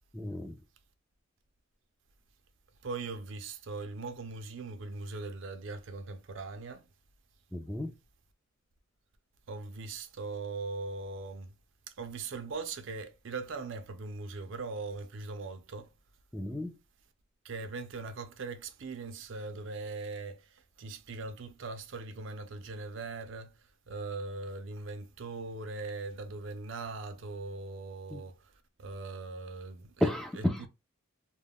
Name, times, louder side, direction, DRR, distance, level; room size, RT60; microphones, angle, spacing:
voice 1, 0.1-0.6 7.5-7.9 16.3-16.8 28.1-28.2 30.0-30.7, left 1 dB, ahead, 0.3 m, -32 dB
voice 2, 2.8-6.9 9.5-11.6 11.9-15.9 17.4-28.5 28.8-30.7, right 3 dB, 65° right, 0.5 m, -40 dB
2.3 x 2.1 x 3.4 m
head